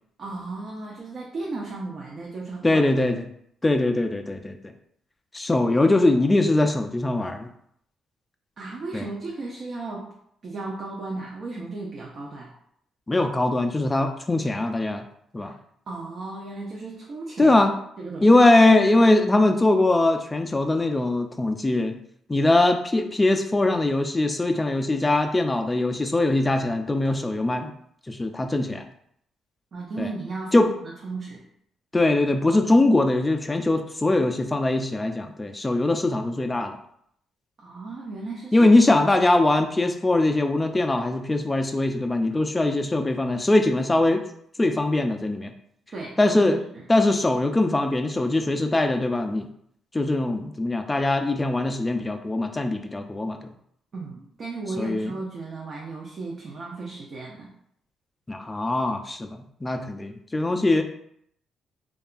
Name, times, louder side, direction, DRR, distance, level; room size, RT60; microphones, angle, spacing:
voice 1, 0.2-2.8 8.6-10.1 10.4-12.5 15.4-15.5 15.9-17.6 18.0-18.3 29.7-31.4 37.6-38.7 45.9-46.8 53.9-57.5, right 3 dB, 50° right, -3 dB, 0.5 m, -35 dB
voice 2, 2.6-3.2 3.6-4.6 5.3-7.5 8.9-9.1 13.1-15.1 15.3-15.5 17.4-17.7 18.2-22.0 22.3-27.7 28.1-28.9 30.0-30.1 30.5-30.7 31.9-36.8 38.5-44.2 44.6-45.5 46.2-46.6 46.9-49.5 49.9-53.4 54.8-55.1 58.3-60.8, left 2 dB, 15° left, 5 dB, 0.3 m, -21 dB
2.7 x 2.3 x 2.4 m, 0.70 s
cardioid pair, 90°, 0 cm